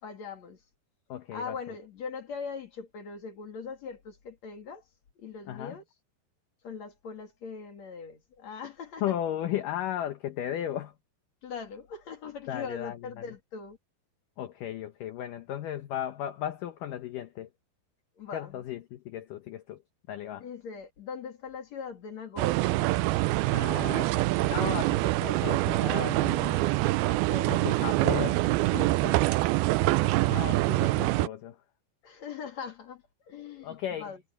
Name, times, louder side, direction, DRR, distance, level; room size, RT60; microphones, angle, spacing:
voice 1, 0.0-0.6 1.3-4.8 5.2-5.8 6.6-9.2 11.4-13.8 18.1-18.6 20.3-22.7 27.0-27.6 32.0-34.2, left 5 dB, 45° left, 3.2 m, -41 dB
voice 2, 1.1-1.6 5.5-5.8 9.0-10.9 12.5-13.3 14.4-17.5 18.3-19.8 20.1-20.5 23.5-26.7 27.5-28.5 28.7-29.2 30.3-31.6 33.6-34.1, left 11 dB, 80° left, 1.9 m, -35 dB
sound 1, 22.4-31.3, right 19 dB, 90° right, 2.1 m, -25 dB
omnidirectional pair, 5.1 m